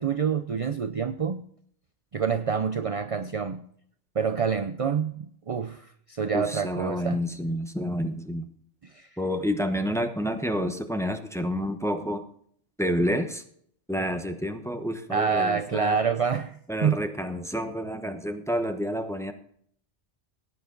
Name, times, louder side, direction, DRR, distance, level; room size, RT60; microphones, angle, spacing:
voice 1, 0.0-1.4 2.1-3.6 4.1-7.2 8.8-9.1 15.1-17.0, right 6 dB, 40° right, 10 dB, 0.5 m, -27 dB
voice 2, 6.3-8.5 9.2-12.2 12.8-13.4 13.9-16.0 16.7-19.3, equal, 5° left, 7 dB, 0.9 m, -29 dB
17.5 x 9.4 x 3.9 m, 0.64 s
omnidirectional pair, 1.2 m